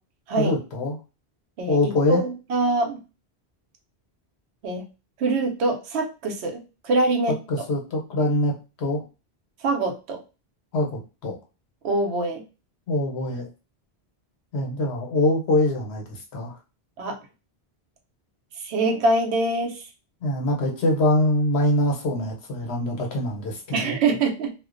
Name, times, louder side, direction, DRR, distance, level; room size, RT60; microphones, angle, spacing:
voice 1, 0.4-1.0 1.7-2.2 7.5-9.0 10.7-11.4 12.9-13.5 14.5-16.5 20.2-24.0, left 1 dB, 80° left, 1 dB, 1.0 m, -24 dB
voice 2, 1.6-3.0 4.6-4.8 5.2-7.7 9.6-10.2 11.8-12.4 17.0-17.2 18.6-19.9 23.7-24.5, right 2 dB, 90° right, 4 dB, 0.9 m, -24 dB
2.4 x 2.1 x 2.4 m, 0.31 s
omnidirectional pair, 1.1 m